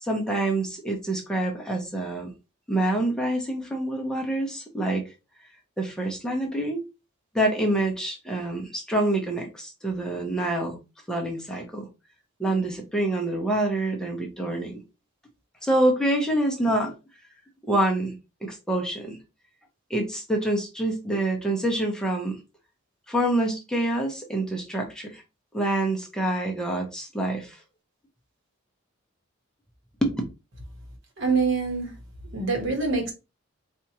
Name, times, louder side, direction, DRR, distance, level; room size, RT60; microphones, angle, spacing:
voice 1, 0.0-2.3 2.7-5.1 5.8-6.8 7.3-10.8 11.1-11.9 12.4-14.7 15.6-16.9 17.6-18.1 18.4-19.2 19.9-22.4 23.1-25.2 25.5-27.6 30.0-30.2, right 1 dB, 5° left, 0.6 m, -26 dB
voice 2, 31.2-31.9 32.3-33.1, right 4 dB, 55° right, 1.2 m, -25 dB
4.3 x 2.4 x 2.8 m
head